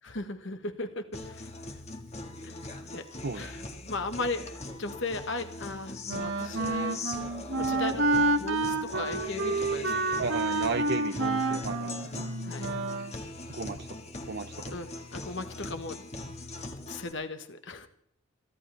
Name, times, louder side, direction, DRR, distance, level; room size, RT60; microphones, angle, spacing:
voice 1, 0.0-1.5 2.4-2.5 2.9-3.1 3.3-7.0 7.5-10.7 12.4-12.8 14.7-16.0 16.7-17.9, left 3 dB, 60° left, 8 dB, 1.5 m, -37 dB
Guitar, 1.1-17.1, left 2 dB, 30° left, 1.9 m, -40 dB
Wind instrument woodwind instrument, 6.1-13.2, right 2 dB, 75° right, 2.2 m, -29 dB
voice 2, 10.2-12.3 13.5-13.9 14.3-14.5, right 4 dB, 50° right, 7 dB, 0.8 m, -34 dB
29.0 x 11.5 x 3.5 m, 0.67 s
head